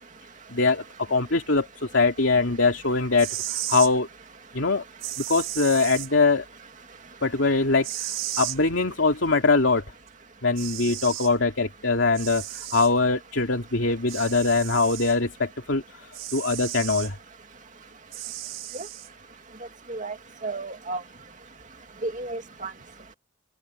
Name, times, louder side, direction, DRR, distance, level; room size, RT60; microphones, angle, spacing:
voice 1, 0.5-0.8 1.1-3.3 3.7-4.1 4.5-4.8 5.3-6.4 7.2-7.9 8.4-9.8 10.4-12.4 12.7-15.8 16.3-17.1, left 3 dB, 70° left, 2.5 m, -22 dB
sound 1, 3.2-3.9 5.0-6.1 7.8-8.6 10.1-10.2 10.6-11.3 12.1-12.9 14.1-15.2 16.1-17.1 18.1-19.1, right 14 dB, 75° right, 4.3 m, -34 dB
voice 2, 20.4-21.0 22.0-22.7, right 2 dB, 40° right, 2.6 m, -32 dB
open air
head